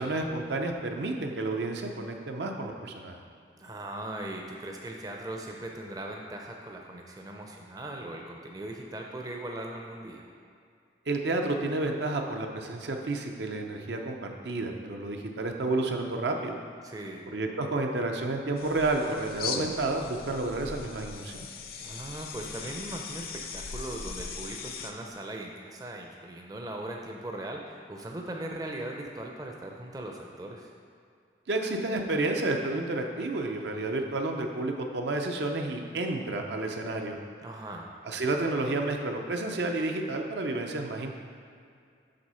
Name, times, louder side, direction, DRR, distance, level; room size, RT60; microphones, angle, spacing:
voice 1, 0.0-3.2 11.1-16.6 17.3-21.5 31.5-37.2 38.0-41.1, right 2 dB, 75° right, 3 dB, 0.6 m, -30 dB
voice 2, 3.6-10.3 16.8-17.3 21.8-30.7 37.4-37.9, right 1 dB, 20° right, 1 dB, 0.5 m, -39 dB
sound 1, 18.6-24.9, left 5 dB, 55° left, 0.5 m, -39 dB
7.7 x 3.5 x 5.5 m, 2.3 s
head